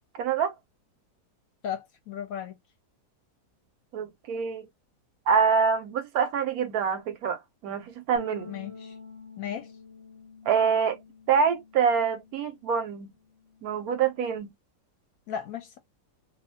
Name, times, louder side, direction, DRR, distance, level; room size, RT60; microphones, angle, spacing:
voice 1, 0.1-0.5 3.9-4.7 5.3-8.6 10.5-11.0 11.3-13.1 13.6-14.5, right 6 dB, 70° right, 1.0 m, -26 dB
voice 2, 1.6-2.5 8.5-8.9 9.4-9.7 15.3-15.8, left 9 dB, 70° left, 0.9 m, -35 dB
sound 1, 8.1-12.7 13.0-14.4, left 3 dB, 40° right, 0.5 m, -48 dB
2.6 x 2.4 x 2.6 m
omnidirectional pair, 1.8 m